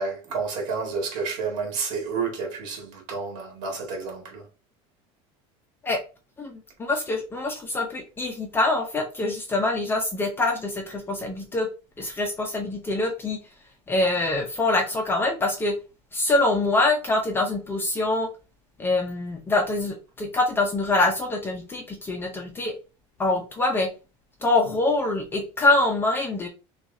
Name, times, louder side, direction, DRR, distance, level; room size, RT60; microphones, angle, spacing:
voice 1, 0.0-4.4, right 4 dB, 55° right, 1.9 m, -30 dB
voice 2, 6.4-11.7 12.0-13.4 13.9-15.7 16.1-18.3 18.8-22.7 23.2-23.9 24.4-26.5, left 2 dB, 15° left, 0.5 m, -24 dB
6.2 x 2.4 x 2.6 m
cardioid pair, 160°, 15 cm